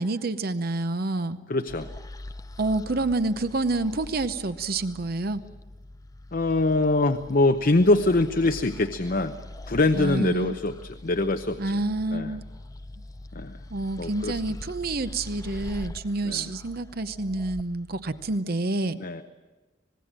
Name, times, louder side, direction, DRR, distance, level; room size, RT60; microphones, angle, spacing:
voice 1, 0.0-1.4 2.6-5.4 9.9-10.6 11.6-12.4 13.7-19.0, right 2 dB, 55° right, 11 dB, 0.8 m, -28 dB
voice 2, 1.5-1.9 6.3-9.3 9.7-11.6 12.1-12.4 13.3-13.6 14.0-14.4 16.2-16.5 19.0-19.2, left 2 dB, 50° left, 8 dB, 0.8 m, -23 dB
sound 1, 1.7-18.4, left 1 dB, 20° left, 0.7 m, -43 dB
25.5 x 20.5 x 7.5 m, 1.2 s
head